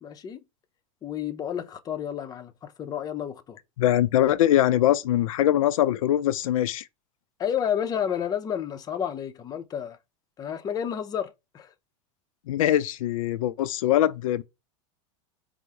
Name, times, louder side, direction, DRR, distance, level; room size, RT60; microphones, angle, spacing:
voice 1, 0.0-0.4 1.0-3.6 7.4-10.0 10.4-11.7, left 9 dB, 25° left, 0.5 m, -31 dB
voice 2, 3.8-6.9 12.5-14.4, left 12 dB, 85° left, 0.4 m, -22 dB
4.6 x 2.0 x 2.8 m
supercardioid pair, 125°, 17 cm